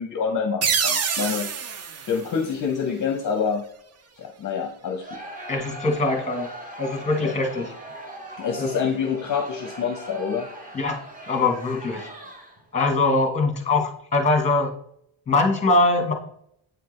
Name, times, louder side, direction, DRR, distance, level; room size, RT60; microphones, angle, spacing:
voice 1, 0.0-1.5 2.1-3.6 4.2-5.2 7.2-7.3 8.4-10.5, left 6 dB, 40° left, 4 dB, 0.6 m, -27 dB
sound 1, 0.6-3.2, right 6 dB, 35° right, 0.4 m, -27 dB
Crowd, 5.0-12.7, right 1 dB, 15° right, 0.8 m, -40 dB
voice 2, 5.5-6.5 6.8-7.7 8.6-8.7 10.7-11.0 11.3-12.1 12.7-14.7 15.3-16.1, left 3 dB, 15° left, 4 dB, 1.0 m, -22 dB
8.0 x 4.4 x 3.1 m, 0.70 s
cardioid pair, 170°, 48 cm